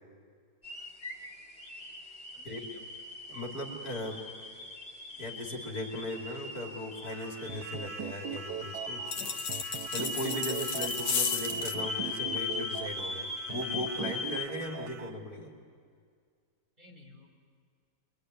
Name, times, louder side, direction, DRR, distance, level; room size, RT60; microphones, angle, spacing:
sound 1, 0.6-14.5, left 2 dB, 35° left, 2.5 m, -39 dB
voice 1, 2.3-3.1 16.8-17.3, left 2 dB, 25° right, -2 dB, 4.8 m, -56 dB
voice 2, 3.3-4.5 5.2-9.0 9.9-15.5, left 1 dB, 60° left, 0 dB, 3.3 m, -38 dB
sound 2, 7.0-15.1, right 9 dB, 85° right, 1.6 m, -42 dB
sound 3, 9.1-11.8, left 6 dB, 80° left, 1.7 m, -34 dB
27.0 x 22.5 x 9.6 m, 2.1 s
omnidirectional pair, 1.8 m